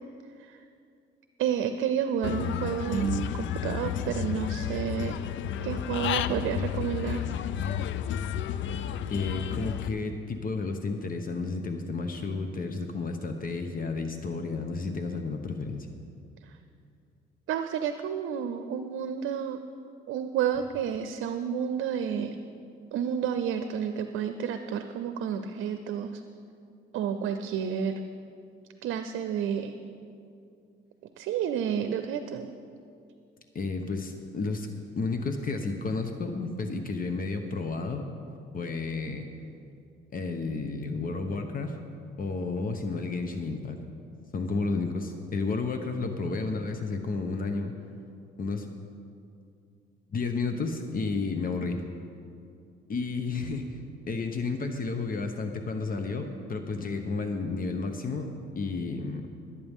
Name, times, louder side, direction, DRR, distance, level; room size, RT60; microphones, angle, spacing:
voice 1, 1.4-5.2 5.6-7.3 17.5-19.6 20.1-22.4 22.9-26.2 26.9-28.0 28.8-29.8 31.2-32.5, right 8 dB, 85° right, 8 dB, 0.6 m, -30 dB
Human voice / Bird, 2.2-9.9, left 10 dB, 75° left, 0.5 m, -31 dB
voice 2, 9.1-15.9 33.5-34.7 35.0-38.0 38.5-39.3 40.1-41.8 42.2-43.8 44.3-47.7 48.4-48.7 50.1-51.8 52.9-53.8 54.1-58.3 58.5-59.3, left 3 dB, 45° left, 6 dB, 1.0 m, -32 dB
20.5 x 8.6 x 3.6 m, 2.4 s
cardioid pair, 90°, 20 cm